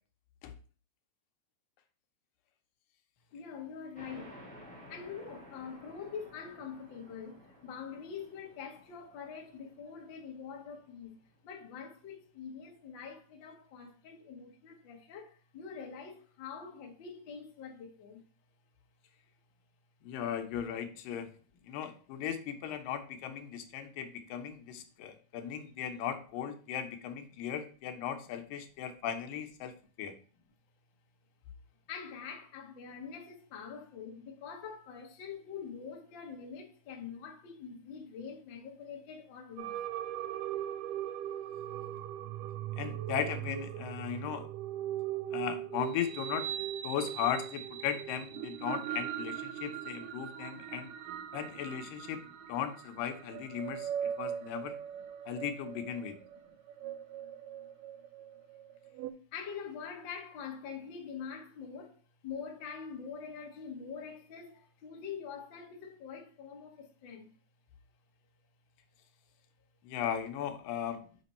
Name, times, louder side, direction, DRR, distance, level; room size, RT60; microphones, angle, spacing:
voice 1, 3.3-4.4 4.7-11.2 11.4-18.2 31.9-39.8 49.5-49.6 50.3-50.7 51.2-51.3 54.6-54.7 56.4-56.6 59.3-67.3, left 6 dB, 60° left, 1.2 m, -45 dB
sound 1, 3.9-11.1, left 1 dB, 5° left, 0.5 m, -54 dB
voice 2, 20.0-21.3 21.7-30.1 42.8-44.5 45.3-50.9 51.3-54.7 55.3-56.2 69.8-71.0, left 9 dB, 80° left, 2.4 m, -37 dB
sound 2, 39.6-59.1, right 11 dB, 80° right, 2.0 m, -40 dB
6.4 x 5.2 x 4.2 m
omnidirectional pair, 4.0 m